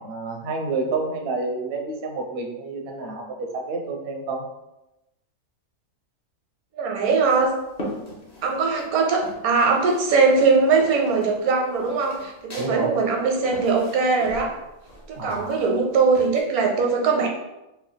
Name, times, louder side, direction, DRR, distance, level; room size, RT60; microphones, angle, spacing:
voice 1, 0.0-4.4 12.6-12.9 15.1-15.6, right 3 dB, 60° right, 2 dB, 0.6 m, -29 dB
voice 2, 6.7-7.5 8.4-14.5 15.1-17.3, right 4 dB, 85° right, 1 dB, 1.2 m, -21 dB
sound 1, 7.0-8.9 9.2-10.1 10.3-16.4, equal, 40° left, 0.6 m, -39 dB
3.3 x 2.2 x 3.8 m, 0.95 s
omnidirectional pair, 1.5 m